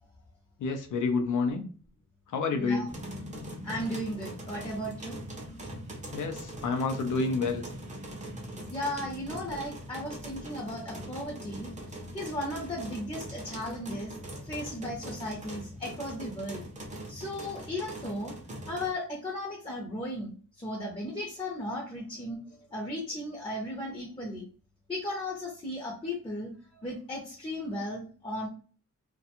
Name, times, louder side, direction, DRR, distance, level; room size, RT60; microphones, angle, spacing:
voice 1, 0.6-1.7 2.3-2.9 6.1-7.7, left 4 dB, 90° left, 6 dB, 0.5 m, -29 dB
voice 2, 2.5-2.9 3.6-5.2 8.7-11.7 12.1-16.6 17.1-18.3 18.7-20.3 20.6-24.5 24.9-28.5, left 1 dB, 20° left, -3 dB, 0.6 m, -36 dB
sound 1, 2.9-18.9, right 1 dB, 25° right, 0.5 m, -42 dB
2.4 x 2.2 x 2.8 m, 0.40 s
wide cardioid pair, 145°, 30 cm